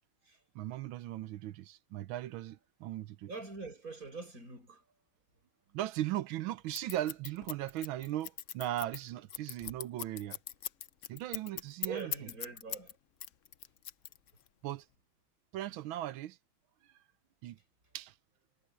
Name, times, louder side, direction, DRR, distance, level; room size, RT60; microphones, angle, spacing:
voice 1, 0.5-3.3 5.7-10.4 11.1-12.1 14.6-14.9 15.5-16.4 17.4-17.6 17.9-18.1, right 14 dB, 75° right, 1.5 m, -38 dB
voice 2, 3.3-4.8 9.6-9.7 11.8-13.0, right 4 dB, 40° right, 7.2 m, -44 dB
Scissors, 6.7-12.9 13.2-14.5, left 10 dB, 80° left, 0.6 m, -40 dB
omnidirectional pair, 2.3 m